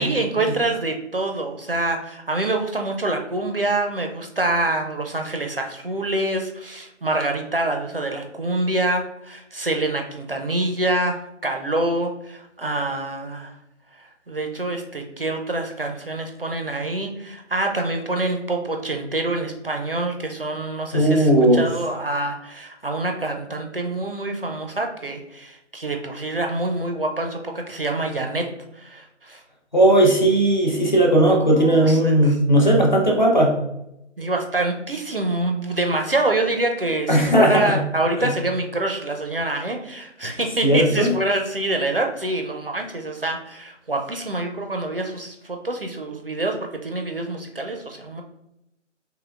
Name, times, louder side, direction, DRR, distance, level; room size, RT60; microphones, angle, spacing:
voice 1, 0.0-13.5 14.0-28.5 28.7-29.4 31.3-32.4 34.2-48.2, right 2 dB, 50° right, 3 dB, 0.4 m, -26 dB
voice 2, 20.9-21.7 29.7-33.6 37.1-37.8 38.2-38.3 40.6-41.1, right 1 dB, 40° left, 0 dB, 0.6 m, -17 dB
3.5 x 3.2 x 2.3 m, 0.83 s
figure-of-eight pair, 165°, 37 cm